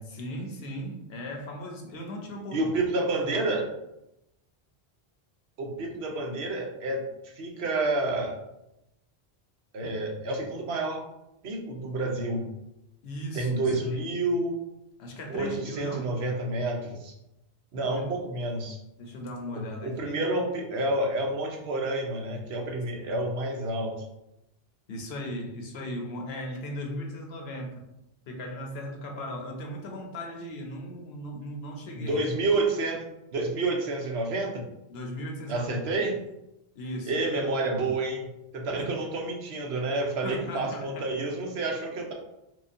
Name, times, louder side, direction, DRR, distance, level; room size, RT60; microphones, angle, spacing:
voice 1, 0.1-3.5 13.0-14.1 15.0-16.2 17.8-18.1 19.0-20.3 24.9-27.9 28.3-32.3 34.9-36.1 36.7-37.5 38.8-39.0 40.2-41.1, equal, 80° left, 2 dB, 0.9 m, -38 dB
voice 2, 2.5-3.7 5.6-8.4 9.7-11.0 11.4-12.5 13.3-14.6 15.3-17.1 17.7-18.8 19.5-23.9 31.9-33.0 33.3-34.6 35.5-36.2 37.1-42.1, right 2 dB, 80° right, 1 dB, 1.0 m, -29 dB
4.7 x 2.3 x 2.6 m, 0.88 s
omnidirectional pair, 1.0 m